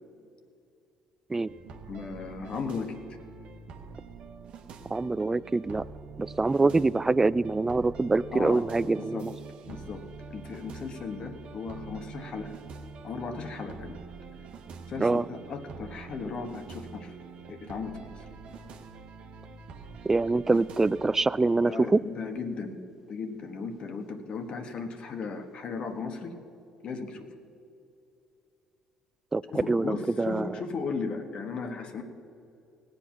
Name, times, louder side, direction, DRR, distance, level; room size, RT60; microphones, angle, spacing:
sound 1, 1.5-21.3, right 5 dB, 65° right, 1.1 m, -45 dB
voice 1, 1.8-3.0 8.3-8.7 8.9-9.3 9.7-10.0 10.3-12.5 13.0-14.0 14.9-17.1 17.5-18.3 21.6-22.8 23.1-26.3 26.8-27.3 29.5-32.0, left 4 dB, 55° left, 5 dB, 1.4 m, -36 dB
voice 2, 4.9-5.8 6.2-9.3 15.0-15.2 20.1-22.0 29.3-29.4 29.7-30.4, right 3 dB, 20° right, 19 dB, 0.3 m, -25 dB
18.0 x 8.0 x 5.9 m, 2.7 s
hypercardioid pair, 60°, 2 cm